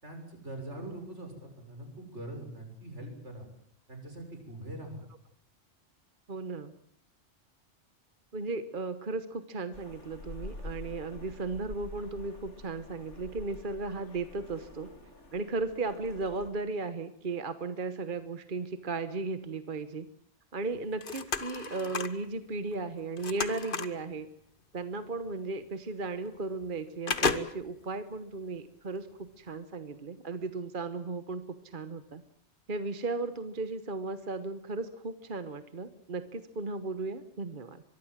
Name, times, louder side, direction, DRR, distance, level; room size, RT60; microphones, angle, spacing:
voice 1, 0.0-3.5 3.9-5.1, right 1 dB, 80° right, 4 dB, 6.7 m, -43 dB
voice 2, 6.3-6.7 8.3-14.9 15.3-20.1 20.5-24.3 24.7-32.2 32.7-37.8, right 3 dB, 45° right, 11 dB, 1.3 m, -36 dB
sound 1, 9.7-16.5, left 2 dB, 85° left, 3.6 m, -47 dB
sound 2, 20.7-22.3 22.7-24.0 25.2-25.3 25.7-25.8 26.3-26.7 27.1-27.9 28.3-28.4, left 4 dB, 50° left, 1.5 m, -33 dB
24.5 x 22.5 x 7.4 m, 0.66 s
omnidirectional pair, 1.2 m